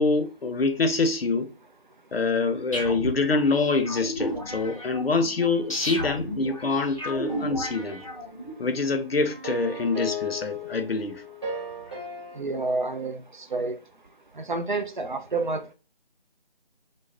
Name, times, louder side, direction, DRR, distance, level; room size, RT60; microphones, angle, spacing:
voice 1, 0.0-1.5 2.1-8.0 8.6-11.2, left 3 dB, 80° left, 0.6 m, -25 dB
sound 1, 2.7-8.5, equal, 35° left, 0.5 m, -34 dB
sound 2, 7.2-8.8 9.3-12.4, left 2 dB, 30° right, 1.1 m, -37 dB
voice 2, 12.4-13.1 13.5-13.8 14.4-15.7, right 3 dB, 55° right, 0.4 m, -28 dB
2.5 x 2.0 x 3.3 m
figure-of-eight pair, 165°, 29 cm